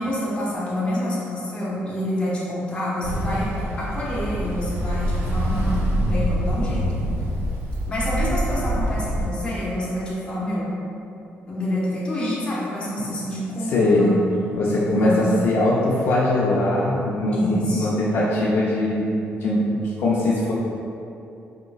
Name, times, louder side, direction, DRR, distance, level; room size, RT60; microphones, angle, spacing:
voice 1, 0.0-3.5 3.8-6.9 7.9-10.7 11.5-14.1 14.8-15.3 17.3-17.9, left 1 dB, 25° left, -7 dB, 0.8 m, -27 dB
Ocean, 3.0-9.3, equal, 65° right, 0.4 m, -25 dB
voice 2, 13.7-14.0 14.5-19.0 19.4-19.6 20.0-20.5, left 2 dB, 65° left, -6 dB, 0.4 m, -21 dB
3.7 x 2.9 x 2.3 m, 2.7 s
cardioid pair, 145°, 4 cm